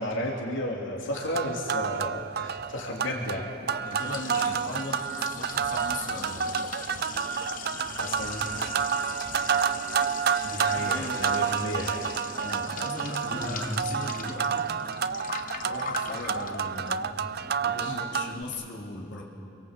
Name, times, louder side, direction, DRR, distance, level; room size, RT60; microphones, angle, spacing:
voice 1, 0.0-3.4 7.9-8.4 10.4-12.1 17.7-18.0, left 1 dB, 85° left, -1 dB, 3.1 m, -33 dB
sound 1, 1.2-18.4, right 7 dB, 55° right, 0.6 m, -30 dB
Liquid, 3.5-18.7, left 6 dB, 45° left, 1.2 m, -41 dB
voice 2, 3.8-6.5 10.7-11.5 12.4-14.7 15.7-17.3 17.6-19.2, left 2 dB, 65° left, -3 dB, 3.6 m, -38 dB
sound 2, 13.3-14.7, equal, 10° left, 2.1 m, -38 dB
28.5 x 23.0 x 8.3 m, 2.8 s
head